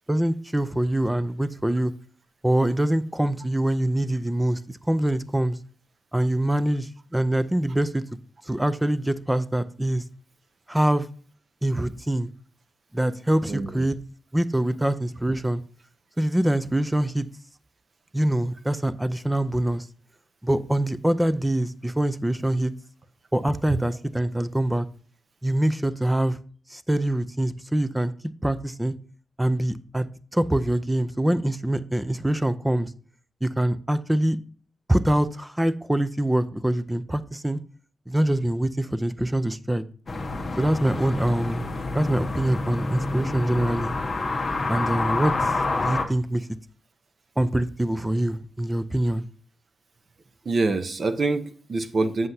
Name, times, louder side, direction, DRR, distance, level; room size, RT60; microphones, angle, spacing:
voice 1, 0.1-1.9 2.4-4.6 4.9-5.6 6.1-8.0 8.5-10.0 10.7-11.1 11.6-12.3 12.9-14.0 14.3-15.6 16.2-17.3 18.1-19.9 20.4-22.7 23.3-24.9 25.4-26.4 26.7-28.1 28.4-28.9 29.4-30.1 30.3-32.9 33.4-34.4 34.9-37.6 38.1-39.8 40.6-41.7 41.9-43.9 44.7-45.5 45.8-46.5 47.4-49.3, right 1 dB, 5° right, 14 dB, 0.4 m, -24 dB
voice 2, 13.5-13.8 23.7-23.8 50.4-52.3, right 3 dB, 40° right, 10 dB, 0.8 m, -25 dB
sound 1, 40.1-46.0, left 3 dB, 30° left, 1.0 m, -28 dB
7.8 x 7.6 x 2.7 m, 0.43 s
wide cardioid pair, 170°, 0 cm